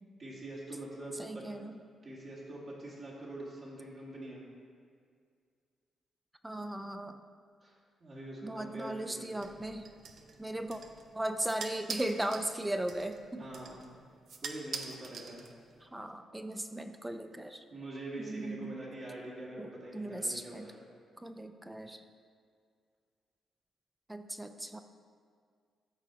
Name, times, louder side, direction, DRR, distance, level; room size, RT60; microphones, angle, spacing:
voice 1, 0.2-1.4 2.0-4.4 7.6-7.7 8.0-9.3 13.4-13.9 14.4-15.4 17.7-20.8, right 1 dB, 50° right, -5 dB, 2.1 m, -44 dB
voice 2, 1.2-1.8 6.4-7.2 8.4-9.9 10.4-10.8 11.1-13.5 15.8-17.6 18.2-18.8 19.6-20.7 21.2-22.0 24.1-24.8, right 1 dB, 10° right, 7 dB, 0.5 m, -37 dB
sound 1, 9.4-15.9, right 5 dB, 65° right, 0.6 m, -46 dB
13.0 x 4.4 x 4.0 m, 2.1 s
cardioid pair, 85°, 0 cm